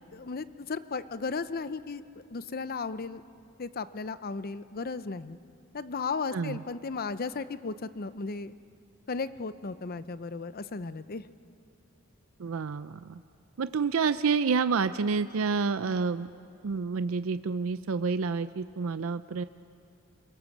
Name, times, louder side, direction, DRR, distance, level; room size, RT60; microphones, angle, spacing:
voice 1, 0.1-2.0 2.3-3.2 3.6-5.4 5.7-8.5 9.1-11.3, left 4 dB, 45° left, 14 dB, 0.7 m, -35 dB
voice 2, 6.3-6.6 12.4-13.2 13.6-16.3 16.6-19.4, right 5 dB, 85° right, 12 dB, 0.5 m, -29 dB
28.0 x 19.0 x 7.3 m, 2.4 s
head